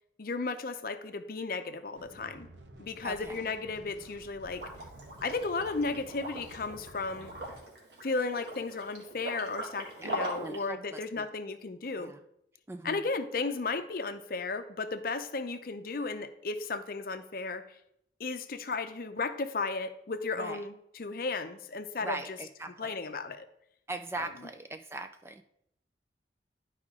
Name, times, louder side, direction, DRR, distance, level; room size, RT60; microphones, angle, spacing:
voice 1, 0.2-2.5 2.8-4.7 5.2-7.3 8.0-12.1 12.8-17.8 18.2-22.4 22.8-23.5 24.2-24.3, left 3 dB, 50° left, 9 dB, 0.6 m, -34 dB
sound 1, 1.9-7.6, right 1 dB, 80° right, 1.0 m, -52 dB
voice 2, 3.0-3.5 10.0-11.3 12.0-12.2 12.7-13.1 20.4-20.6 22.0-23.0 23.9-25.4, right 2 dB, 15° right, 8 dB, 0.3 m, -40 dB
Liquid, 4.5-10.6, right 1 dB, 60° right, 1.9 m, -41 dB
11.5 x 4.9 x 3.6 m, 0.76 s
head